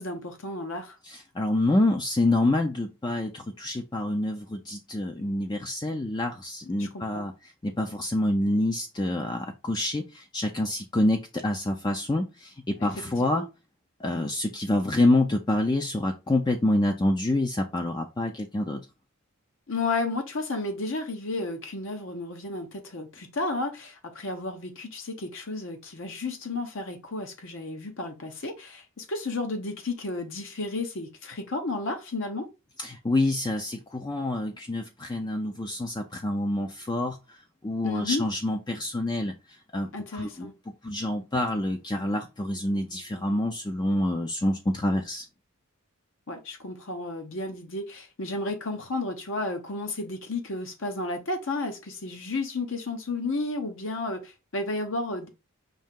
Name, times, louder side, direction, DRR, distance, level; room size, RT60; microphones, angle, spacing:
voice 1, 0.0-1.0 6.8-7.2 12.8-12.9 13.2-13.5 19.7-32.5 37.8-38.2 39.9-40.5 46.3-55.3, left 2 dB, 60° left, 0.8 m, -32 dB
voice 2, 1.1-7.3 7.6-13.4 14.0-18.8 32.8-37.2 37.6-39.3 39.7-40.5 40.8-45.3, left 1 dB, 20° left, 0.4 m, -27 dB
5.4 x 2.7 x 3.6 m
head